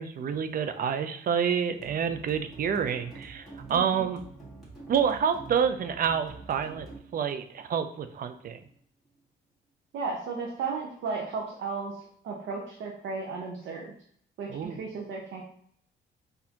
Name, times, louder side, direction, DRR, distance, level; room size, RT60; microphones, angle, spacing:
voice 1, 0.0-4.2 4.9-6.9 7.1-8.6 14.5-14.8, right 7 dB, 45° right, 9 dB, 0.4 m, -28 dB
sound 1, 1.8-8.8, right 3 dB, ahead, 1.6 m, -47 dB
voice 2, 3.7-4.1 9.9-13.9 14.4-15.4, right 4 dB, 75° right, -1 dB, 0.7 m, -35 dB
4.1 x 2.6 x 2.8 m, 0.63 s
cardioid pair, 90°, 20 cm